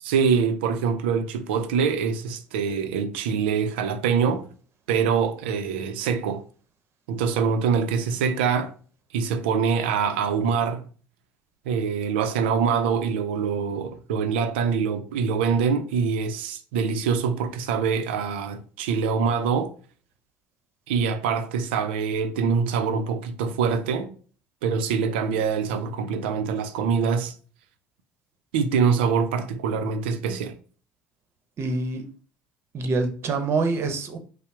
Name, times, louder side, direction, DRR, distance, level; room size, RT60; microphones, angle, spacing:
voice 1, 0.0-4.5 4.9-6.4 7.1-8.7 9.1-10.8 11.7-19.7 20.9-24.1 24.6-27.3 28.5-30.6, right 6 dB, 75° right, 0.5 m, -24 dB
voice 2, 31.6-32.0 32.7-34.2, right 3 dB, 50° right, 0.9 m, -25 dB
5.5 x 2.1 x 4.6 m
hypercardioid pair, 60°, 6 cm